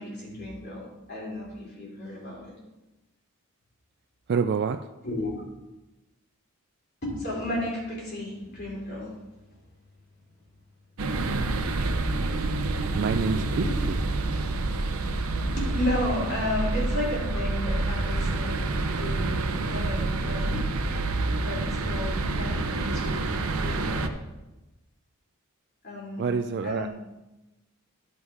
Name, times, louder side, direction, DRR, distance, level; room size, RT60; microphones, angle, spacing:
voice 1, 0.0-2.5 5.0-5.5 7.0-9.2 13.5-13.9 15.5-20.7 21.4-23.3 23.6-24.1 25.8-26.3 26.6-26.9, left 1 dB, 50° left, -4 dB, 3.3 m, -33 dB
voice 2, 4.3-4.8 12.9-13.7 26.2-26.9, right 5 dB, 50° right, 8 dB, 0.3 m, -26 dB
sound 1, 11.0-24.1, right 2 dB, 75° right, 0.7 m, -28 dB
11.0 x 5.4 x 4.8 m, 1.0 s
head